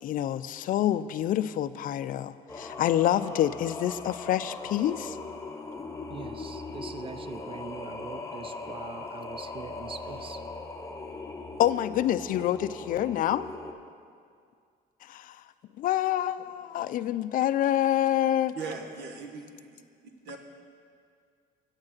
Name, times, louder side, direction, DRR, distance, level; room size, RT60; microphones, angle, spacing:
voice 1, 0.0-5.2 11.6-13.5 15.1-15.4 15.8-18.6, left 12 dB, 55° left, 14 dB, 0.4 m, -27 dB
Singing, 2.5-13.7, left 3 dB, 20° left, 0.8 m, -39 dB
voice 2, 6.1-10.4, right 5 dB, 30° right, 11 dB, 0.5 m, -43 dB
voice 3, 18.5-19.8 20.2-20.4, right 4 dB, 75° right, 4 dB, 1.2 m, -39 dB
8.8 x 6.4 x 7.2 m, 2.2 s
cardioid pair, 110°, 17 cm